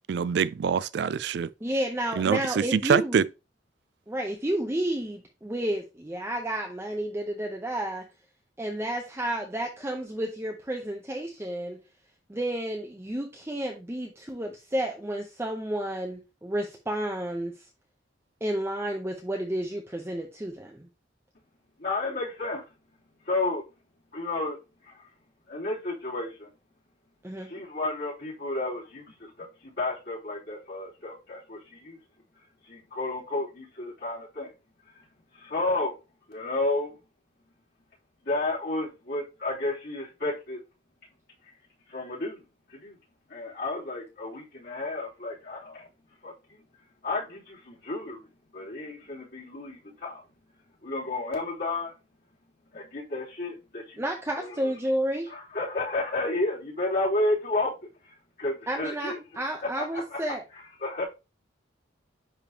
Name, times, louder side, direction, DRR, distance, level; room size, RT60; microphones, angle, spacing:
voice 1, 0.1-1.5 2.2-3.2, right 7 dB, 60° right, 0.3 m, -25 dB
voice 2, 1.6-3.2 4.1-8.1 8.6-11.8 12.3-17.7 18.4-20.9 27.2-27.5 54.0-55.3 58.7-60.4, right 1 dB, 15° right, 0.6 m, -31 dB
voice 3, 21.8-22.6 23.2-23.6 24.1-24.6 24.8-25.1 25.5-26.5 27.4-32.0 32.6-34.5 35.0-35.1 35.3-35.9 36.3-37.0 38.2-40.6 41.9-42.4 42.7-42.9 43.3-45.9 46.2-46.3 47.0-48.3 48.5-50.2 50.8-51.9 52.7-54.0 54.4-54.5 55.3-57.7 58.0-59.2 59.8-60.2 60.8-61.0, left 2 dB, 55° left, 3.1 m, -31 dB
9.9 x 3.6 x 2.8 m
head